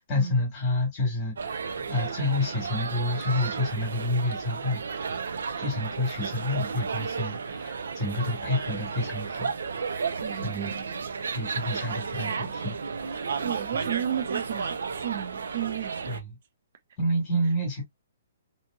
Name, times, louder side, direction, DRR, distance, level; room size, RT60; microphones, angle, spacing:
voice 1, 0.0-10.1 10.4-10.7 11.3-13.4 16.1-16.2 17.0-17.8, left 1 dB, 15° left, 1.2 m, -29 dB
sound 1, 1.4-16.2, right 5 dB, 85° right, 0.5 m, -33 dB
voice 2, 10.2-10.9 13.4-16.2, right 10 dB, 40° right, 0.6 m, -33 dB
2.8 x 2.7 x 2.3 m
hypercardioid pair, 175°, 0 cm